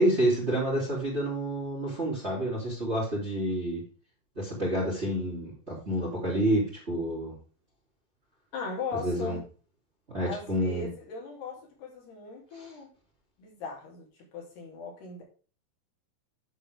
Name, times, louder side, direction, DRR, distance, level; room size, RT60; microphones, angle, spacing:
voice 1, 0.0-3.8 4.3-7.3 9.0-9.4 10.1-10.9 12.5-12.7, right 1 dB, 15° right, -2 dB, 2.9 m, -28 dB
voice 2, 8.5-9.4 10.2-12.9 13.4-15.2, left 4 dB, 70° left, -1 dB, 5.2 m, -39 dB
10.0 x 7.4 x 3.5 m, 0.37 s
omnidirectional pair, 4.9 m